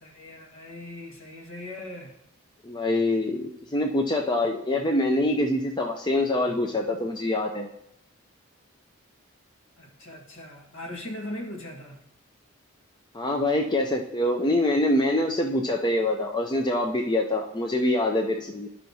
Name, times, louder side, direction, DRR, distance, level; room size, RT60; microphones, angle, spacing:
voice 1, 0.0-2.2 9.8-12.0, left 1 dB, 65° left, 0 dB, 1.6 m, -39 dB
voice 2, 2.6-7.7 13.1-18.7, left 1 dB, 20° left, 2 dB, 0.5 m, -25 dB
13.5 x 5.6 x 2.7 m, 0.82 s
head